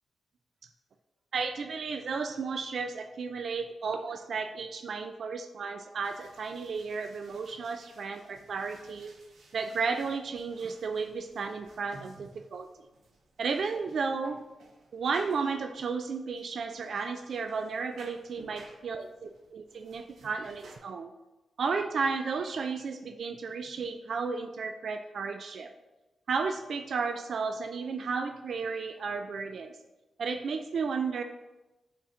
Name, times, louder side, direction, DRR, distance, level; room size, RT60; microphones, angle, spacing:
voice 1, 1.3-9.1 9.5-12.7 13.4-14.4 14.9-19.0 19.5-21.1 21.6-25.7 26.3-29.8 30.2-31.2, right 5 dB, 55° right, 6 dB, 0.3 m, -33 dB
sound 1, 6.0-20.8, right 3 dB, 75° right, 1.1 m, -56 dB
5.9 x 4.2 x 5.6 m, 1.1 s
wide cardioid pair, 180°, 0 cm